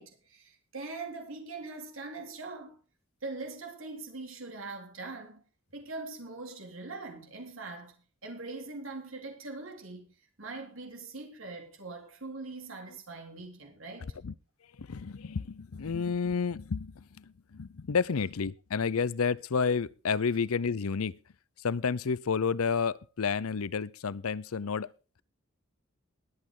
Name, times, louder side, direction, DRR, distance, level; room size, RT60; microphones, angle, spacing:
voice 1, 0.0-2.8 3.2-5.4 5.7-8.0 8.2-14.1, right 3 dB, 70° right, 3.8 m, -42 dB
voice 2, 14.8-21.1 21.6-24.9, left 5 dB, 90° left, 0.6 m, -30 dB
20.5 x 8.6 x 3.8 m
head